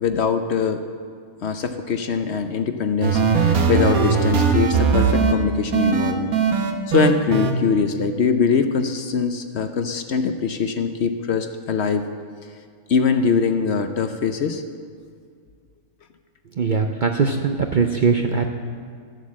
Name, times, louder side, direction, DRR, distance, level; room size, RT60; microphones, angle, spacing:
voice 1, 0.0-0.8 1.4-3.2 3.5-6.3 6.9-12.1 12.9-14.6, left 6 dB, 60° left, 8 dB, 0.8 m, -22 dB
sound 1, 3.0-5.3 5.7-7.5, right 5 dB, 85° right, 1.5 m, -19 dB
voice 2, 16.6-18.5, right 5 dB, 50° right, 4 dB, 0.6 m, -20 dB
12.5 x 8.0 x 7.3 m, 2.1 s
omnidirectional pair, 1.5 m